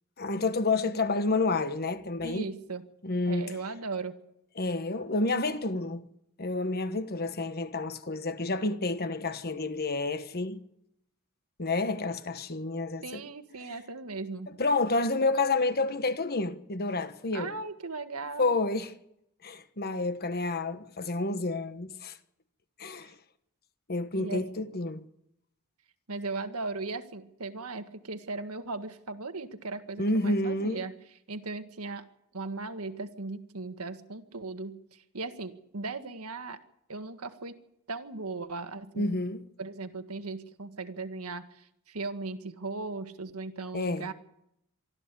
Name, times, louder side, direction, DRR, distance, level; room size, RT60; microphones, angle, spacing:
voice 1, 0.2-2.5 3.0-3.5 4.6-6.0 6.4-10.6 11.6-13.2 14.6-17.5 18.4-18.9 19.4-22.2 22.8-23.1 23.9-25.0 30.0-30.8 39.0-39.4 43.7-44.1, left 3 dB, 45° left, 1.3 m, -29 dB
voice 2, 2.2-2.8 3.3-4.1 13.0-14.5 17.3-18.5 23.0-23.1 24.2-24.5 26.1-30.9 31.3-32.1 32.3-36.6 36.9-37.6 37.9-39.2 39.6-44.1, right 3 dB, 75° right, 1.7 m, -37 dB
24.0 x 14.0 x 8.5 m
head